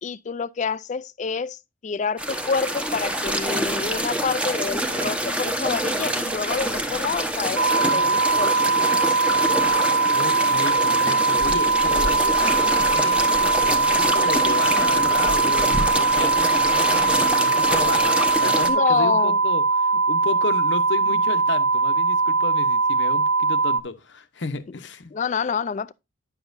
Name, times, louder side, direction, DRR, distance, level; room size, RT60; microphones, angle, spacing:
voice 1, 0.0-9.2 18.7-19.4 25.1-25.9, left 5 dB, 35° left, 0.3 m, -27 dB
sound 1, 2.2-18.7, right 1 dB, 5° right, 0.9 m, -26 dB
sound 2, 7.6-23.8, right 3 dB, 70° right, 0.8 m, -21 dB
voice 2, 9.7-25.1, left 3 dB, 60° left, 0.8 m, -33 dB
9.9 x 7.1 x 2.5 m
head